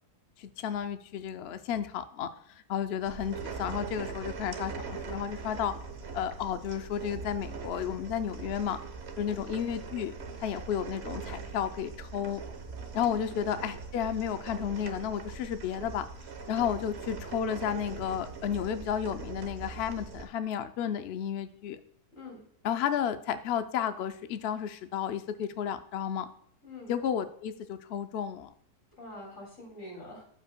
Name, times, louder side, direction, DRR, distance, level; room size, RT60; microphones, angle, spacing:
voice 1, 0.4-5.8 6.1-8.8 9.2-10.1 10.4-12.4 12.9-16.1 16.5-21.8 22.6-26.3 26.9-28.5, left 8 dB, 70° left, 10 dB, 0.6 m, -32 dB
sound 1, 3.0-20.3, right 5 dB, 50° right, 1.1 m, -41 dB
voice 2, 22.1-22.4 26.6-26.9 29.0-30.2, left 2 dB, 55° left, 0 dB, 3.1 m, -45 dB
13.0 x 5.4 x 2.2 m, 0.66 s
omnidirectional pair, 1.7 m